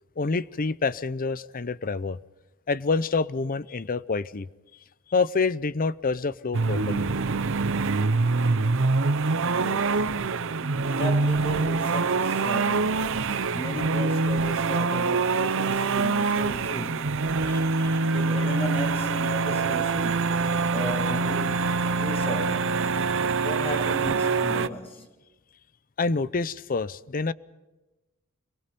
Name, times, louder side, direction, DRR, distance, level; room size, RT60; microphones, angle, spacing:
voice 1, 0.2-2.2 2.7-4.5 5.1-7.1 17.4-17.9 26.0-27.3, left 4 dB, 40° left, 0.6 m, -27 dB
sound 1, 6.5-24.7, right 4 dB, 65° right, 0.8 m, -25 dB
voice 2, 9.5-17.7 18.0-20.4 20.7-22.9 23.4-25.1, equal, 25° left, 2.1 m, -35 dB
26.0 x 23.0 x 5.4 m
head